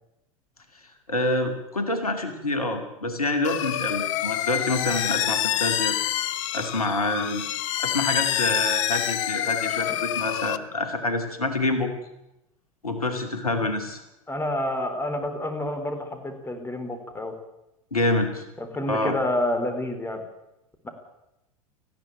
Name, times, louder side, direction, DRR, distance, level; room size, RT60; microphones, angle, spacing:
voice 1, 1.1-6.0 6.5-7.4 7.8-11.9 12.8-14.0 17.9-18.4 18.9-19.2, left 2 dB, 85° left, 6 dB, 2.7 m, -27 dB
sound 1, 3.4-10.6, left 12 dB, 60° left, 1.0 m, -27 dB
voice 2, 14.3-17.3 18.6-20.2, left 1 dB, 10° left, 6 dB, 4.2 m, -28 dB
19.0 x 15.0 x 9.0 m, 0.88 s
figure-of-eight pair, 85°, 18 cm